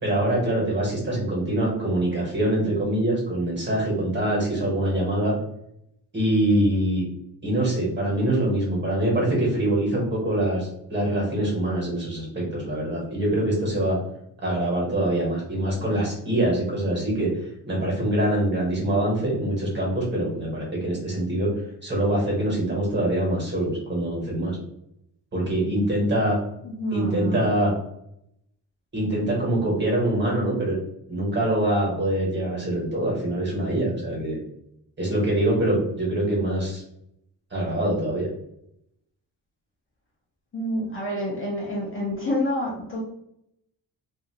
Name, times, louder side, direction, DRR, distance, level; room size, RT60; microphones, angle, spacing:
voice 1, 0.0-5.3 6.1-7.0 7.4-14.0 14.4-17.3 17.7-21.5 21.8-24.6 25.3-26.4 26.9-27.7 28.9-30.8 31.1-34.4 35.0-36.8 37.5-38.3, right 1 dB, 30° right, -3 dB, 1.2 m, -24 dB
voice 2, 26.6-27.5 40.5-43.0, equal, 35° left, -3 dB, 0.7 m, -28 dB
2.8 x 2.5 x 2.8 m, 0.77 s
wide cardioid pair, 155°, 37 cm